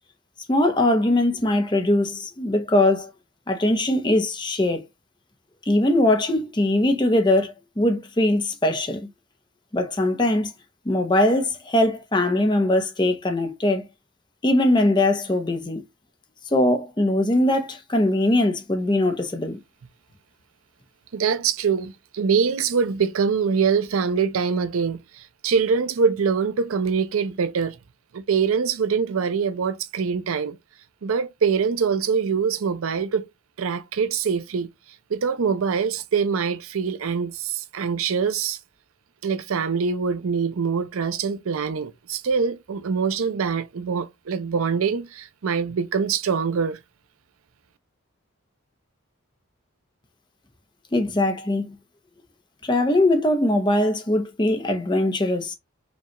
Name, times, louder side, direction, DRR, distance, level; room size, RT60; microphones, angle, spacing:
voice 1, 0.5-3.1 3.5-4.8 5.7-9.1 9.7-10.5 10.9-13.8 14.4-15.8 16.5-19.6 50.9-51.7 52.6-55.5, left 1 dB, 20° left, 0.6 m, -21 dB
voice 2, 21.1-25.0 25.4-27.8 28.1-30.6 31.0-33.2 33.6-34.7 35.1-38.6 39.2-46.8, right 6 dB, 75° right, 0.5 m, -24 dB
5.1 x 2.3 x 2.9 m
head